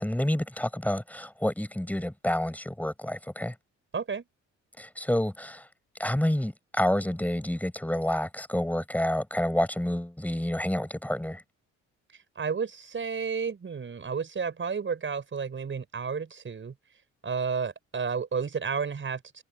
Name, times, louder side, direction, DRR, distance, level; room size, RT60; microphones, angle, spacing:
voice 1, 0.0-3.5 4.8-5.7 6.0-11.4, left 1 dB, 5° left, 7.7 m, -29 dB
voice 2, 3.9-4.2 12.4-16.7 17.2-19.4, right 5 dB, 40° right, 6.1 m, -31 dB
cardioid pair, 90°, 30 cm